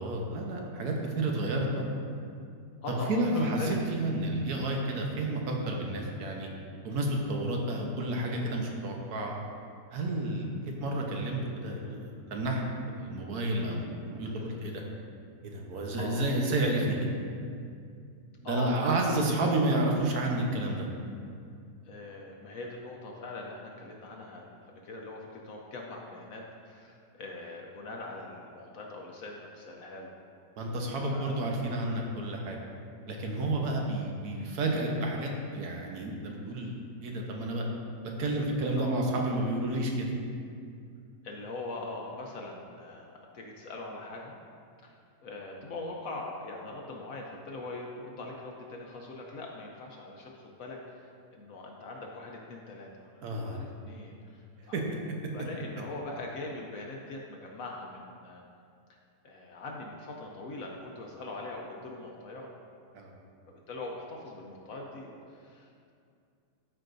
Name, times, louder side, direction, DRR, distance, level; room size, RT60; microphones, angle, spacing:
voice 1, 0.0-1.9 3.1-3.6 3.9-6.5 6.8-9.3 9.9-10.5 10.8-12.6 12.9-14.8 15.4-16.9 18.4-20.9 30.6-32.6 33.1-36.7 37.0-37.6 38.2-40.1 53.2-53.6 54.7-55.0 62.9-63.1, right 1 dB, 65° right, 0 dB, 1.4 m, -30 dB
voice 2, 1.1-1.6 2.8-4.0 14.2-14.5 15.9-16.3 18.4-19.1 21.8-30.1 31.0-31.5 33.8-34.0 38.8-39.0 41.2-44.4 44.8-54.8 55.3-58.4 59.2-62.5 63.5-65.9, left 2 dB, 60° left, -1 dB, 1.0 m, -42 dB
13.5 x 4.8 x 2.6 m, 2.4 s
omnidirectional pair, 1.8 m